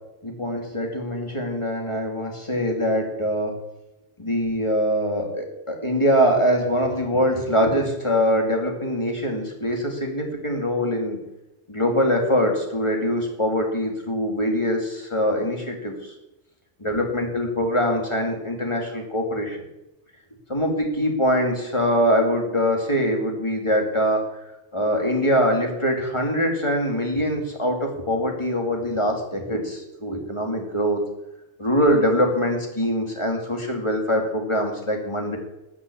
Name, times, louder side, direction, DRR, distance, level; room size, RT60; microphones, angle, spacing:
voice 1, 0.2-3.6 4.2-11.2 11.7-16.1 16.8-19.6 20.5-24.3 24.7-31.0 31.6-35.4, equal, 25° left, 2 dB, 2.5 m, -23 dB
13.0 x 6.1 x 8.5 m, 0.91 s
omnidirectional pair, 1.2 m